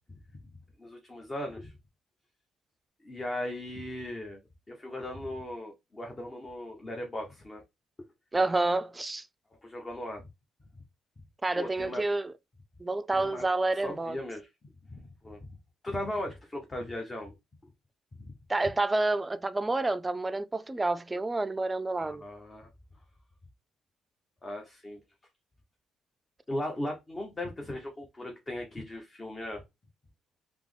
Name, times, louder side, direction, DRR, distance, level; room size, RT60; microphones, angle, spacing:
voice 1, 0.8-1.8 3.0-4.4 4.7-7.6 9.6-10.2 11.6-12.0 13.1-13.4 13.8-14.5 14.9-15.5 15.8-17.3 18.2-18.3 22.0-22.7 24.4-25.0 26.5-29.6, left 1 dB, 30° left, 0.9 m, -37 dB
voice 2, 8.3-9.3 11.4-12.3 12.8-14.2 18.5-22.2, right 2 dB, 20° right, 0.4 m, -29 dB
3.4 x 2.1 x 3.2 m
hypercardioid pair, 50°, 0 cm